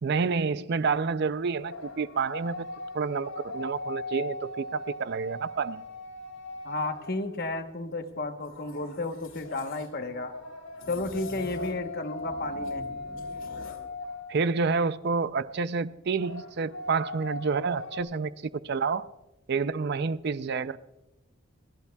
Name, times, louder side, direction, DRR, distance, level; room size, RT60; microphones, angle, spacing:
voice 1, 0.0-2.7 2.9-5.8 14.3-18.3 18.6-19.0 19.5-20.8, right 5 dB, 50° right, 15 dB, 0.4 m, -29 dB
sound 1, 1.5-7.6 9.4-14.8 16.1-18.0, left 2 dB, 90° left, 4.3 m, -39 dB
voice 2, 6.6-10.4 10.9-12.8, left 2 dB, 50° left, 7 dB, 1.1 m, -33 dB
sound 2, 8.4-9.9 10.8-11.9 12.2-13.9, left 2 dB, 70° left, 2.2 m, -46 dB
28.0 x 11.0 x 2.3 m, 0.95 s
head